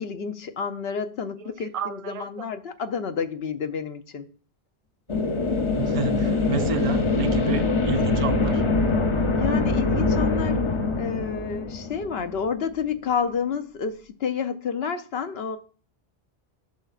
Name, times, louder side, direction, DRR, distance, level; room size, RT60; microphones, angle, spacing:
voice 1, 0.0-4.3 9.3-15.6, left 6 dB, 75° left, 1.0 m, -30 dB
voice 2, 1.4-2.2 5.7-8.6, right 6 dB, 45° right, 0.5 m, -30 dB
sound 1, 5.1-12.6, left 3 dB, 35° left, 0.6 m, -24 dB
10.5 x 6.5 x 2.4 m
omnidirectional pair, 1.1 m